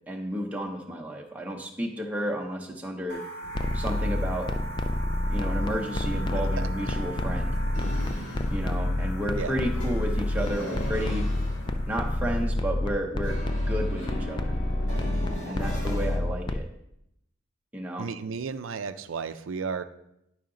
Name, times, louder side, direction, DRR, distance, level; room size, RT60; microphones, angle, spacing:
voice 1, 0.1-3.2 3.7-4.5 5.3-7.5 8.5-11.3 11.9-13.4 13.7-14.5 15.5-16.7 17.7-18.1, equal, 5° right, 0 dB, 0.7 m, -32 dB
sound 1, 3.1-12.8, right 1 dB, 55° left, 1.2 m, -42 dB
sound 2, 3.4-16.6, left 1 dB, 25° left, 0.3 m, -28 dB
sound 3, 5.7-16.2, equal, 70° left, 2.3 m, -39 dB
voice 2, 18.0-19.8, right 5 dB, 80° right, 10 dB, 0.4 m, -33 dB
10.5 x 4.8 x 3.8 m, 0.81 s
head